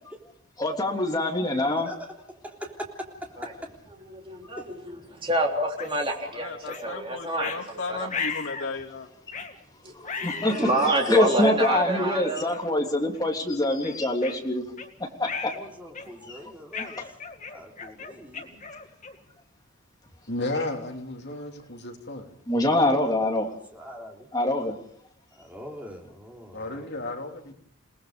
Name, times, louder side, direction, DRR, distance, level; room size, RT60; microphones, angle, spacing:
voice 1, 0.6-1.9 9.9-14.6 15.2-15.5 16.3-16.4 17.0-17.1 22.5-23.5 24.3-24.7, left 1 dB, 20° left, 1 dB, 3.2 m, -25 dB
voice 2, 1.8-3.3 4.6-4.7 15.3-17.0 17.5-18.6 23.7-24.3 25.4-26.9, equal, 5° right, -1 dB, 3.6 m, -42 dB
voice 3, 4.3-4.8 5.1-7.5 7.9-8.0 10.2-12.5, right 1 dB, 25° right, 0 dB, 3.6 m, -27 dB
sound 1, 5.8-5.9 6.7-6.9 7.4-7.6 8.1-8.7 9.3-9.5 10.0-11.0 11.7-11.8 12.5-12.7 13.1-13.3 13.8-14.9 15.2-15.6 15.9-16.3 16.7-19.3, left 5 dB, 35° left, 2.2 m, -36 dB
voice 4, 6.2-9.1, left 3 dB, 90° left, -4 dB, 2.8 m, -35 dB
voice 5, 20.3-22.3 26.5-27.5, left 2 dB, 55° left, 2 dB, 3.1 m, -33 dB
28.5 x 19.5 x 5.2 m, 0.62 s
head